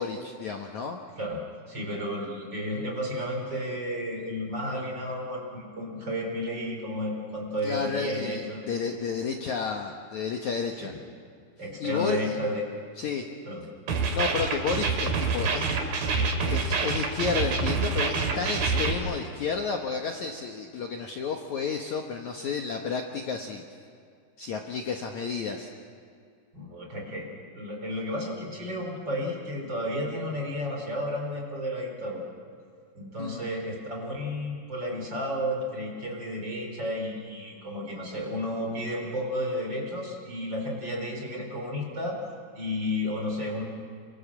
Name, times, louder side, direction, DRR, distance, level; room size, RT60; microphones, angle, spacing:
voice 1, 0.0-1.0 7.6-10.9 11.8-12.3 13.0-13.3 14.1-15.7 16.5-23.6 24.4-25.7 33.2-33.5, left 5 dB, 60° left, 2 dB, 2.2 m, -31 dB
voice 2, 1.7-8.6 10.8-10.9 11.6-12.6 13.5-13.6 26.5-32.2 32.9-42.2 42.5-43.6, left 1 dB, 25° right, 0 dB, 4.6 m, -32 dB
sound 1, 13.9-18.9, right 4 dB, 60° right, 4.1 m, -26 dB
30.0 x 24.5 x 7.4 m, 2.3 s
omnidirectional pair, 4.7 m